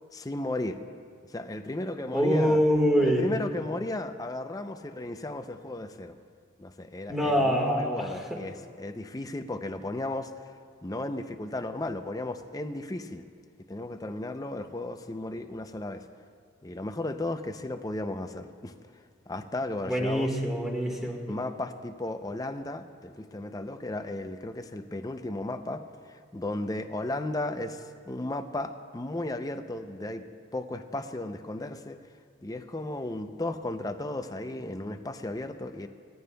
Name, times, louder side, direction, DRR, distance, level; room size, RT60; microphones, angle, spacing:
voice 1, 0.1-0.8 1.3-2.6 3.0-6.2 6.6-10.3 10.8-13.3 13.6-16.1 16.6-18.7 19.3-20.4 21.3-30.3 30.5-32.0 32.4-35.9, left 2 dB, 20° left, 8 dB, 0.5 m, -35 dB
voice 2, 2.1-3.3 7.1-8.4 19.8-21.3, equal, ahead, -1 dB, 1.6 m, -25 dB
19.5 x 14.5 x 2.3 m, 2.1 s
head